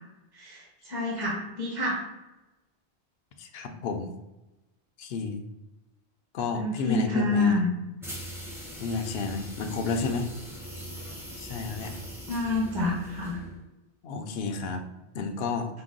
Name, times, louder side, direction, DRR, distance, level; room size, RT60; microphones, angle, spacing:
voice 1, 0.3-2.0 6.5-7.7 12.3-13.4, left 2 dB, 20° right, -4 dB, 0.9 m, -28 dB
voice 2, 3.4-4.1 5.0-5.4 6.3-7.6 8.8-10.3 11.4-11.9 14.0-14.8 15.1-15.7, left 4 dB, 70° left, 6 dB, 0.8 m, -31 dB
sound 1, 8.0-13.6, equal, 5° right, 0.7 m, -41 dB
5.7 x 2.0 x 3.7 m, 1.0 s
omnidirectional pair, 1.1 m